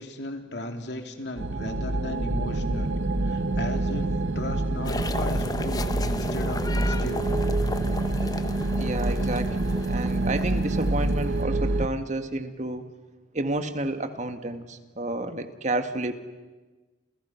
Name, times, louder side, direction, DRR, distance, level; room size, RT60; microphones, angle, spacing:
voice 1, 0.0-2.9 3.2-4.1 4.3-7.3, left 1 dB, 65° left, 5 dB, 3.0 m, -36 dB
sound 1, 1.4-11.9, right 2 dB, 85° right, 1.0 m, -27 dB
sound 2, 4.8-11.4, left 2 dB, 20° left, 0.9 m, -35 dB
voice 2, 8.8-12.9 13.3-16.1, right 2 dB, 40° right, 8 dB, 1.7 m, -30 dB
30.0 x 29.0 x 5.8 m, 1.2 s
head